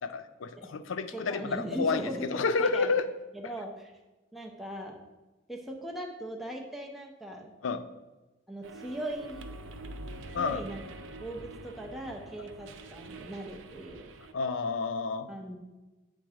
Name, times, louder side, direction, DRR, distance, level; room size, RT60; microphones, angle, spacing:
voice 1, 0.0-2.0 2.3-3.1 7.6-7.8 10.3-10.6 14.3-15.3, left 4 dB, 80° left, 10 dB, 0.5 m, -30 dB
voice 2, 1.1-2.3 2.6-2.9 3.3-3.9 4.3-5.0 5.5-7.5 8.5-9.5 10.4-10.8 11.2-14.1 15.3-15.6, right 1 dB, ahead, -1 dB, 0.6 m, -39 dB
sound 1, 8.6-14.3, right 2 dB, 75° right, 0.6 m, -45 dB
8.2 x 3.8 x 4.8 m, 1.1 s
head